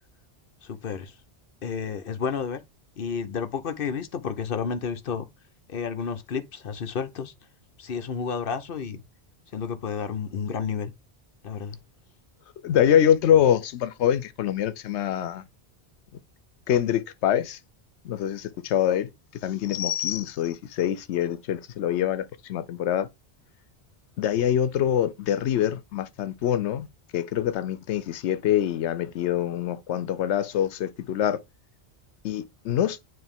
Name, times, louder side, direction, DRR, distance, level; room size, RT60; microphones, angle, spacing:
voice 1, 0.6-1.2 1.6-2.6 3.0-5.3 5.7-7.3 7.8-9.0 9.5-10.9 11.4-11.8, left 6 dB, 60° left, 0.9 m, -31 dB
voice 2, 12.6-15.4 16.7-17.6 18.0-19.1 19.4-23.1 24.2-26.9 27.1-31.4 32.2-33.0, left 10 dB, 90° left, 0.9 m, -24 dB
9.3 x 3.2 x 3.5 m
omnidirectional pair, 1.1 m